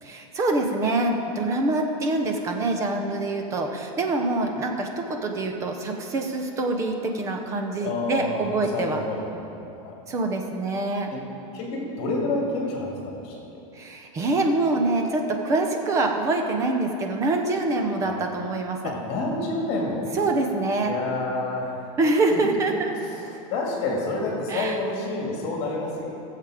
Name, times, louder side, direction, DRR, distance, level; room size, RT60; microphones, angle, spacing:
voice 1, 0.0-9.0 10.1-11.1 13.7-18.9 20.1-20.9 22.0-22.9 24.5-24.8, right 2 dB, 15° right, 3 dB, 0.7 m, -25 dB
voice 2, 7.8-9.3 9.6-10.0 11.1-11.2 11.5-13.6 18.0-18.2 18.8-20.1 20.8-22.4 23.1-23.2 23.5-26.1, left 2 dB, 35° left, -2 dB, 2.4 m, -29 dB
14.5 x 7.5 x 5.0 m, 2.8 s
supercardioid pair, 170°, 17 cm